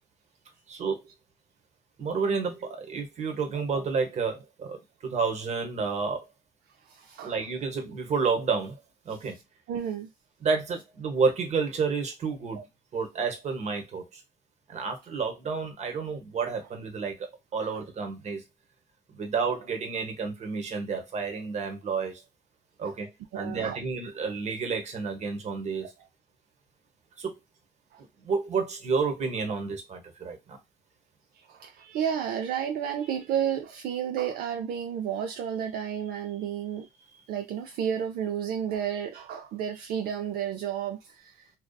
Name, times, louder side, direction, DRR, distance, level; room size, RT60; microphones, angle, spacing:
voice 1, 0.7-1.0 2.0-6.2 7.2-8.8 9.0-9.4 10.4-12.6 12.9-14.2 14.7-18.4 19.1-22.2 22.8-23.1 23.3-25.9 27.2-27.3 28.2-30.6, right 5 dB, 40° right, 0.9 m, -30 dB
voice 2, 6.8-7.4 9.7-10.1 12.6-12.7 17.6-17.7 22.8-23.0 23.3-23.8 27.9-28.0 31.4-41.5, right 9 dB, 70° right, 0.4 m, -32 dB
2.6 x 2.3 x 2.2 m
cardioid pair, 110°, 17 cm